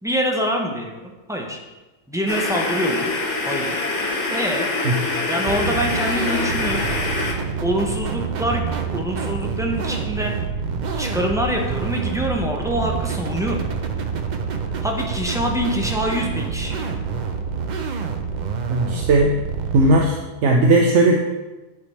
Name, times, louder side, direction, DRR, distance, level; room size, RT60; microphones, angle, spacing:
voice 1, 0.0-1.6 2.1-3.1 3.4-3.8 4.3-4.7 5.3-6.8 7.6-10.3 11.0-13.6 14.8-17.0, equal, 5° right, 0 dB, 0.6 m, -25 dB
sound 1, 2.3-7.3, left 2 dB, 85° left, 1.4 m, -24 dB
sound 2, 5.5-20.0, right 5 dB, 50° right, 0.6 m, -27 dB
voice 2, 18.7-19.4 19.7-20.2 20.4-21.2, right 2 dB, 90° right, 0 dB, 1.0 m, -16 dB
9.5 x 3.4 x 4.2 m, 1.1 s
omnidirectional pair, 1.2 m